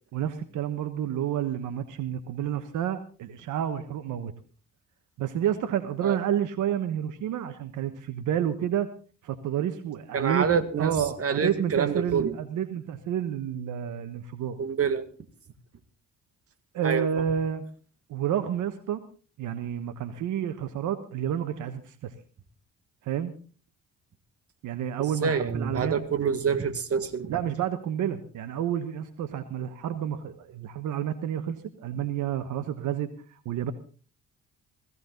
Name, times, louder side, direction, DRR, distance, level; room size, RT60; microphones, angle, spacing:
voice 1, 0.1-4.3 5.2-8.9 9.2-10.5 10.8-14.6 16.7-17.6 18.1-19.0 19.4-22.1 23.0-23.3 24.6-26.0 27.3-33.1 33.4-33.7, right 9 dB, 80° right, 10 dB, 1.3 m, -30 dB
voice 2, 10.1-12.3 14.6-15.0 16.8-17.1 25.2-27.4, right 6 dB, 50° right, 9 dB, 2.0 m, -27 dB
16.5 x 16.5 x 3.9 m, 0.38 s
cardioid pair, 90°, 30 cm